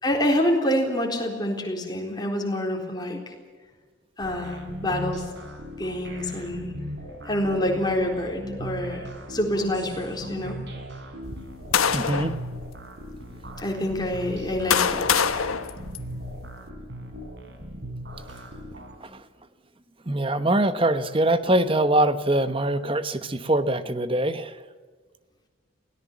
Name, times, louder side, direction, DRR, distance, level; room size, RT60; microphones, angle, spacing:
voice 1, 0.0-3.3 4.2-5.3 5.8-6.7 7.2-10.6 13.6-15.2, left 1 dB, 20° left, 1 dB, 4.0 m, -27 dB
sound 1, 4.2-19.0, right 1 dB, 55° right, 4.3 m, -38 dB
sound 2, 11.2-12.4 13.2-13.3 14.2-16.5, left 7 dB, 85° left, 1.2 m, -25 dB
voice 2, 11.9-12.4 19.0-19.3 20.0-24.6, right 1 dB, 25° right, 11 dB, 1.1 m, -23 dB
23.5 x 18.0 x 7.4 m, 1.5 s
head